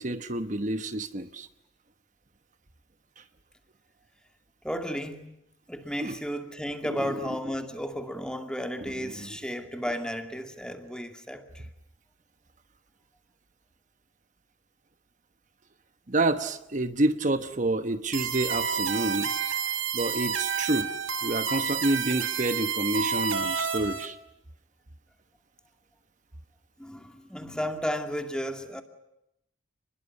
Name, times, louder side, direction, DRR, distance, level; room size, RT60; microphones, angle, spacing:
voice 1, 0.0-1.5 6.0-6.2 16.1-19.3 19.9-20.9 21.2-24.2, right 2 dB, 40° right, 1.1 m, -28 dB
voice 2, 4.6-5.3 5.7-11.7 26.8-28.8, equal, 5° left, 2.3 m, -33 dB
sound 1, 18.1-24.1, right 7 dB, 85° right, 2.7 m, -29 dB
30.0 x 21.5 x 8.4 m
head